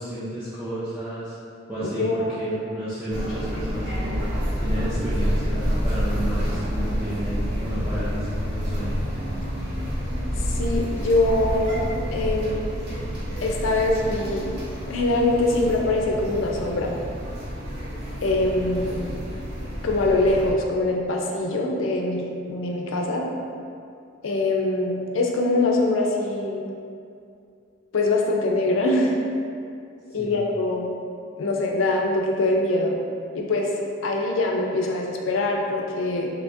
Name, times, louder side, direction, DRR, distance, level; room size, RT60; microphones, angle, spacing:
voice 1, 0.0-1.3 1.7-4.2 4.6-9.0 30.2-30.4, right 1 dB, 5° right, -13 dB, 0.4 m, -32 dB
voice 2, 1.8-2.6 10.4-11.8 12.1-12.6 13.4-14.5 14.8-16.9 18.2-19.0 19.8-23.2 24.2-26.7 27.9-29.2 30.1-30.9 31.4-32.9 33.3-33.7 34.0-36.3, left 2 dB, 70° left, 0 dB, 0.4 m, -23 dB
sound 1, 3.1-20.5, equal, 55° right, 0.7 m, -28 dB
3.5 x 2.7 x 2.5 m, 2.4 s
head